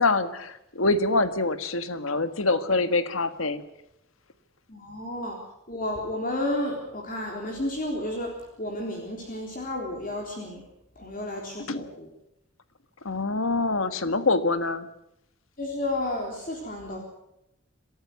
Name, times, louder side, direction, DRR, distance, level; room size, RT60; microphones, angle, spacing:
voice 1, 0.0-3.6 11.7-11.8 13.0-14.9, left 3 dB, 80° left, 11 dB, 1.6 m, -25 dB
voice 2, 4.7-5.4 5.7-10.6 11.0-12.1 15.6-17.0, left 1 dB, 40° left, 1 dB, 3.7 m, -32 dB
26.5 x 13.5 x 8.1 m, 0.85 s
head